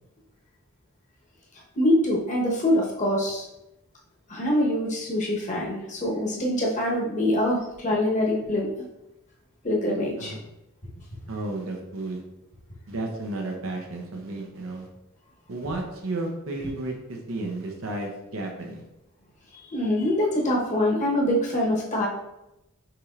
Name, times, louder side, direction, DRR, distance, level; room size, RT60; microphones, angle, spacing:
voice 1, 1.7-3.4 4.3-8.7 9.6-10.3 19.7-22.1, left 1 dB, 40° left, -3 dB, 1.1 m, -24 dB
voice 2, 11.3-12.2 12.9-14.9 15.5-18.8, right 2 dB, 85° right, 1 dB, 0.7 m, -33 dB
5.8 x 3.1 x 2.5 m, 0.90 s
head